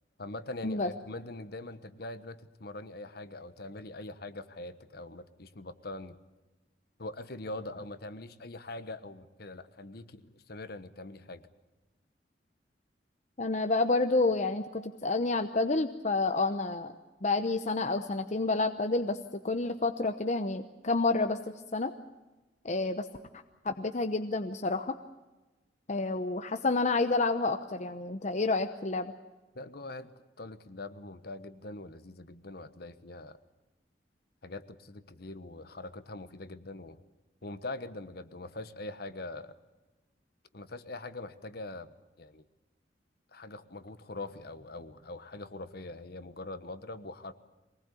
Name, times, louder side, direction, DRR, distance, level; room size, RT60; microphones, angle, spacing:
voice 1, 0.2-6.2 7.0-11.5 29.5-33.4 34.4-37.0 37.4-39.6 40.5-41.9 42.2-42.4 43.3-47.3, left 2 dB, 60° left, 12 dB, 1.3 m, -43 dB
voice 2, 13.4-16.9 17.2-21.4 21.7-21.9 22.6-23.1 23.6-24.9 25.9-29.1, left 3 dB, 40° left, 7 dB, 0.9 m, -29 dB
23.5 x 19.5 x 8.4 m, 1.1 s
head